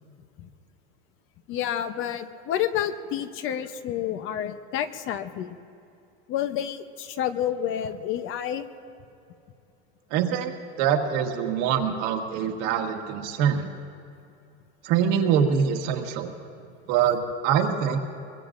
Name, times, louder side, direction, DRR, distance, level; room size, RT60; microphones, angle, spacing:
voice 1, 1.5-5.6 6.3-8.7, left 10 dB, 40° left, 10 dB, 0.8 m, -29 dB
voice 2, 10.1-10.5 10.8-13.7 14.8-16.3 16.9-18.0, right 8 dB, 55° right, 4 dB, 1.6 m, -24 dB
23.0 x 22.0 x 2.6 m, 2.6 s
supercardioid pair, 135°, 32 cm